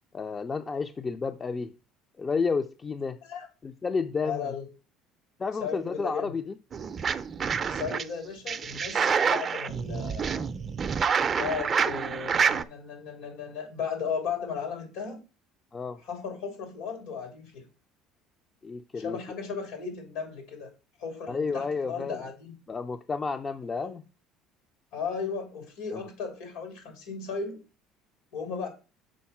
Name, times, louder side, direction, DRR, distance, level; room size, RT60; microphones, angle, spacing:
voice 1, 0.1-1.7 2.2-3.2 3.6-4.5 5.4-6.6 15.7-16.0 18.6-19.2 21.3-22.2 22.7-24.0 25.9-26.0, left 4 dB, 30° left, 0.4 m, -31 dB
voice 2, 4.2-4.7 5.6-6.3 7.7-10.4 11.4-15.2 16.0-17.6 18.9-20.7 21.0-22.5 23.7-23.9 24.9-27.6 28.3-28.7, left 6 dB, 85° left, 3.1 m, -35 dB
sound 1, 6.7-8.0 8.5-12.6, right 6 dB, 35° right, 0.5 m, -27 dB
6.3 x 4.1 x 5.7 m
supercardioid pair, 100°, 0 cm